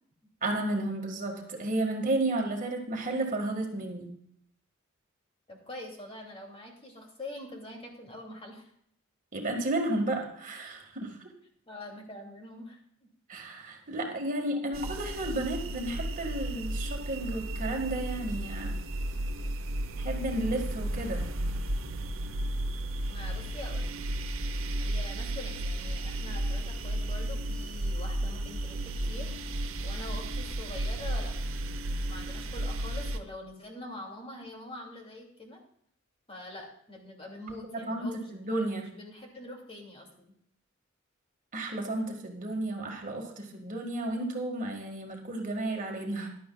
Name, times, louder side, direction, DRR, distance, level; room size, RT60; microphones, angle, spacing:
voice 1, 0.4-4.1 9.3-11.2 13.3-18.8 20.0-21.3 37.9-38.9 41.5-46.3, right 2 dB, 40° right, 1 dB, 1.7 m, -32 dB
voice 2, 5.5-8.7 11.7-12.8 14.0-14.1 23.1-24.0 24.8-29.3 29.8-31.4 32.1-35.6 36.3-38.3 38.8-40.3, left 1 dB, 30° left, 0 dB, 2.5 m, -44 dB
sound 1, 14.7-33.2, right 1 dB, 70° right, 0.9 m, -33 dB
15.0 x 11.5 x 2.3 m, 0.69 s
head